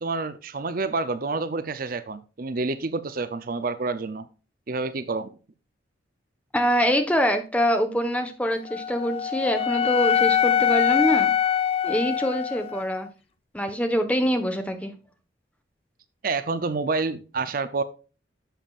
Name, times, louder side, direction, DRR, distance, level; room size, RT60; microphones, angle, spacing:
voice 1, 0.0-4.3 4.7-5.3 16.2-17.8, right 3 dB, 45° right, 0.6 m, -28 dB
voice 2, 6.5-11.3 11.8-13.1 13.5-14.9, equal, 5° left, 1.1 m, -24 dB
Wind instrument woodwind instrument, 8.7-12.9, left 9 dB, 30° left, 0.4 m, -23 dB
11.5 x 7.1 x 2.4 m
head